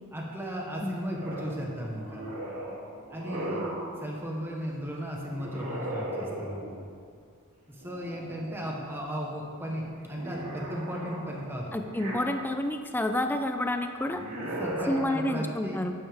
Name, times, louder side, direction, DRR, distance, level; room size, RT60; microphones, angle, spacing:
voice 1, 0.1-2.3 3.1-3.6 4.0-6.7 7.7-11.7 14.4-15.8, equal, 10° right, -2 dB, 1.1 m, -36 dB
sound 1, 1.2-4.0 5.3-6.9 7.8-8.8 9.2-12.7 14.0-15.0, right 1 dB, 85° right, 3.0 m, -38 dB
voice 2, 11.7-14.2 14.9-15.9, left 1 dB, 10° left, 6 dB, 0.4 m, -29 dB
12.0 x 9.3 x 3.6 m, 2.1 s
head